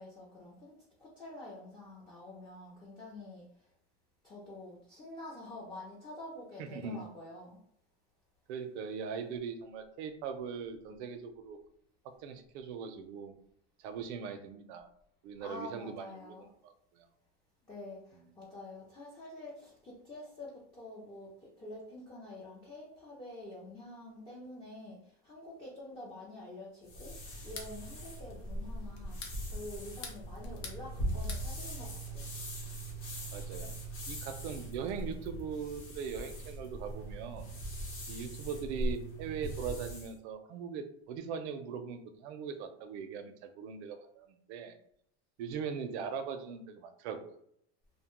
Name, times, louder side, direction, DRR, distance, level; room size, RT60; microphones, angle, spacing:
voice 1, 0.0-3.7 4.2-7.6 15.4-16.5 17.6-27.2 27.4-32.3, left 1 dB, 15° left, -6 dB, 0.4 m, -47 dB
voice 2, 6.6-7.0 8.5-11.6 12.2-13.3 13.8-14.9 15.2-17.1 33.3-33.7 34.1-37.5 38.1-44.8 45.4-47.3, right 6 dB, 75° right, 8 dB, 0.5 m, -40 dB
sound 1, 26.9-40.2, right 1 dB, 40° left, 0.9 m, -40 dB
sound 2, 27.3-27.7 29.0-29.4 29.8-30.8 31.1-31.5, left 5 dB, 65° left, 0.7 m, -45 dB
2.7 x 2.1 x 2.9 m, 0.71 s
supercardioid pair, 155°, 33 cm